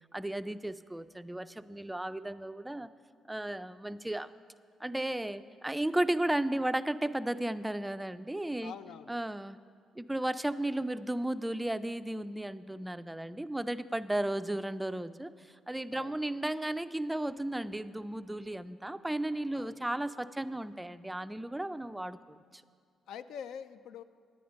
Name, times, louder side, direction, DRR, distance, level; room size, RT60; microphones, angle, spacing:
voice 1, 0.1-2.9 3.3-4.3 4.8-8.7 9.1-9.6 10.0-22.6, right 1 dB, 10° right, 13 dB, 0.3 m, -34 dB
voice 2, 8.6-9.1 15.9-16.2 19.5-19.7 23.1-24.0, left 8 dB, 80° left, 12 dB, 0.4 m, -45 dB
10.0 x 9.4 x 5.1 m, 2.1 s
cardioid pair, 90°, 0 cm